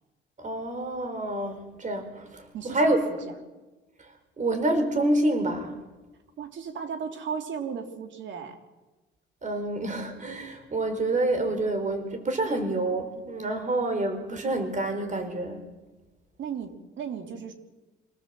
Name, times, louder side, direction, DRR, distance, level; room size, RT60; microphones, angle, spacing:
voice 1, 0.4-3.0 4.4-5.8 9.4-15.7, right 2 dB, 40° right, 7 dB, 4.9 m, -27 dB
voice 2, 2.5-3.0 6.4-8.6 16.4-17.5, right 7 dB, 70° right, 5 dB, 3.5 m, -35 dB
26.0 x 18.5 x 7.9 m, 1.1 s
cardioid pair, 90°, 20 cm